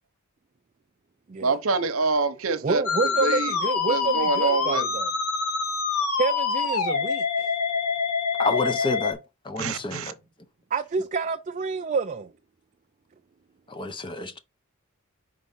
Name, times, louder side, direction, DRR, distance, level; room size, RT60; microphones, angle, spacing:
voice 1, 1.4-2.8 3.2-3.5 3.9-4.8 9.6-10.1, right 4 dB, 65° right, 0.9 m, -26 dB
voice 2, 2.6-5.1 6.2-7.5 10.7-12.3, right 4 dB, 35° right, 0.4 m, -28 dB
Musical instrument, 2.8-9.1, left 5 dB, 75° left, 1.4 m, -26 dB
voice 3, 8.4-9.2 9.4-10.1 13.7-14.4, left 3 dB, 20° left, 0.6 m, -28 dB
5.1 x 4.7 x 5.5 m
head